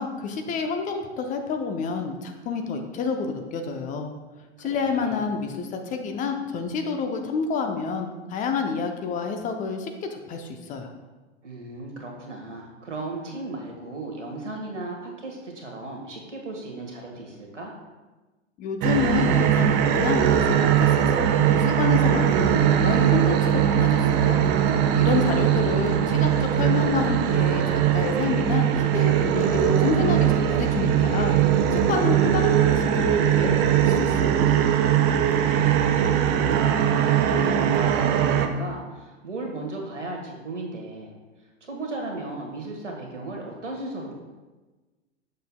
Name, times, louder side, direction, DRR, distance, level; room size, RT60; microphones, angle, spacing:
voice 1, 0.0-4.1 4.6-10.9 18.6-24.4 25.0-31.3 31.7-34.5, left 5 dB, 25° left, 5 dB, 0.5 m, -29 dB
voice 2, 4.6-5.2 11.4-17.7 24.9-25.8 35.0-41.2 41.6-44.1, right 2 dB, 90° right, 0 dB, 1.5 m, -36 dB
sound 1, 18.8-38.5, right 9 dB, 30° right, 0.5 m, -21 dB
6.6 x 6.4 x 2.2 m, 1.2 s
figure-of-eight pair, 100°, 35 cm